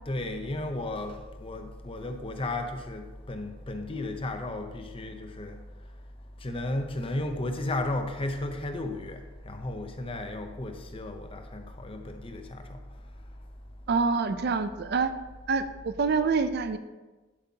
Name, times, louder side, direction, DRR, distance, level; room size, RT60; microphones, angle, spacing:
voice 1, 0.1-5.6 6.4-12.8, left 2 dB, 25° left, 0.7 m, -34 dB
voice 2, 13.9-15.1 15.5-16.8, right 4 dB, 55° right, 0.4 m, -26 dB
10.5 x 8.0 x 2.8 m
head